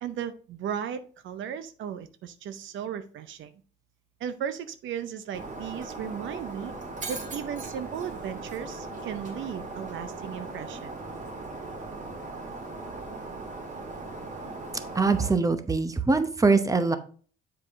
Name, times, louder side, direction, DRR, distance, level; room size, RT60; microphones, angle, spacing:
voice 1, 0.0-3.5 4.2-6.7 7.1-11.0, right 8 dB, 75° right, 11 dB, 0.6 m, -36 dB
Shatter, 5.3-15.3, right 3 dB, 40° right, 1.8 m, -38 dB
voice 2, 14.9-17.0, right 4 dB, 15° right, 10 dB, 0.9 m, -23 dB
7.8 x 4.8 x 3.6 m, 0.41 s
cardioid pair, 90°, 20 cm